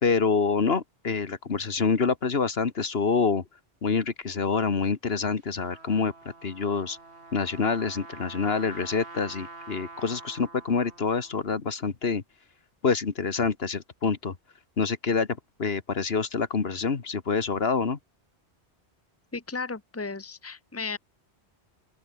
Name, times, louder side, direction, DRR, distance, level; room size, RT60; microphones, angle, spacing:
voice 1, 0.0-3.4 3.8-6.1 6.4-7.0 7.3-12.2 12.8-14.3 14.8-15.3 15.6-18.0, left 5 dB, 65° left, 1.7 m, -26 dB
Trumpet, 5.4-11.3, right 3 dB, 80° right, 2.9 m, -46 dB
voice 2, 19.3-21.0, left 4 dB, 15° left, 1.2 m, -34 dB
open air
omnidirectional pair, 1.1 m